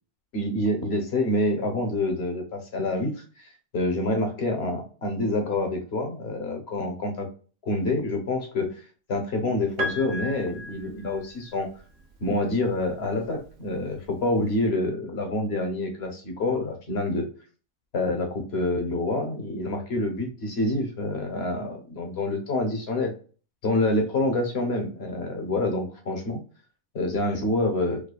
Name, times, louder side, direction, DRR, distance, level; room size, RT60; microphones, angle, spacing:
voice 1, 0.3-3.1 3.4-3.5 3.7-7.3 7.6-8.7 9.1-11.7 12.2-17.3 17.9-23.1 23.6-26.4 26.9-28.0, left 2 dB, 55° left, 4 dB, 1.1 m, -27 dB
Piano, 9.8-11.8 13.1-13.2, equal, 80° right, 1.2 m, -34 dB
4.9 x 2.2 x 2.3 m, 0.38 s
omnidirectional pair, 1.4 m